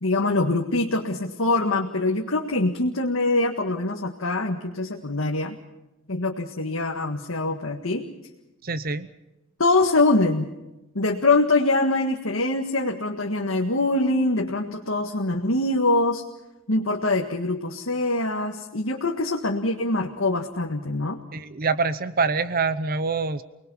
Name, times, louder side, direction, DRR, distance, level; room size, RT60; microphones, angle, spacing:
voice 1, 0.0-5.5 6.1-8.0 9.6-10.5 10.9-16.2 16.7-21.2, left 2 dB, 80° left, 1 dB, 1.8 m, -24 dB
voice 2, 8.6-9.1 21.3-23.4, right 4 dB, 45° right, 13 dB, 0.9 m, -25 dB
29.5 x 20.0 x 5.7 m, 0.97 s
head